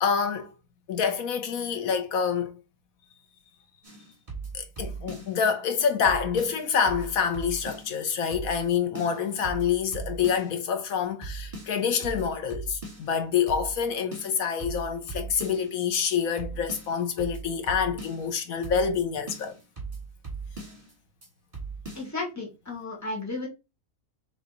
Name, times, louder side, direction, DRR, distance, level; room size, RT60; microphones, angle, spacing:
voice 1, 0.0-0.5 0.9-2.5 4.5-19.5, left 7 dB, 75° left, 1.3 m, -27 dB
sound 1, 3.8-5.4 5.7-5.8 6.0-8.0 8.3-8.7 8.9-10.6 10.9-11.0 11.2-13.2 13.5-13.8 14.1-15.8 16.0-16.1 16.4-18.3 18.6-19.0 19.3-20.9 21.2-21.3 21.5-22.1, right 4 dB, 25° right, 1.8 m, -39 dB
voice 2, 22.0-23.5, left 2 dB, 10° left, 1.7 m, -33 dB
3.7 x 3.4 x 3.9 m
omnidirectional pair, 1.5 m